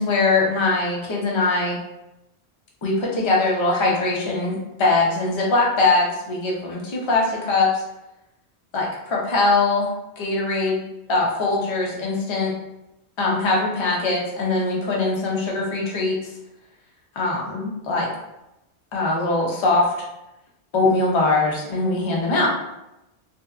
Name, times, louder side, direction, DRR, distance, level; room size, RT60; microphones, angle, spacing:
voice 1, 0.0-1.8 2.8-7.8 8.7-9.9 10.2-10.8 11.1-12.5 13.2-16.2 17.2-18.1 18.9-19.9 20.7-22.5, left 3 dB, 40° left, -3 dB, 0.5 m, -21 dB
2.6 x 2.1 x 2.3 m, 0.91 s
omnidirectional pair, 1.1 m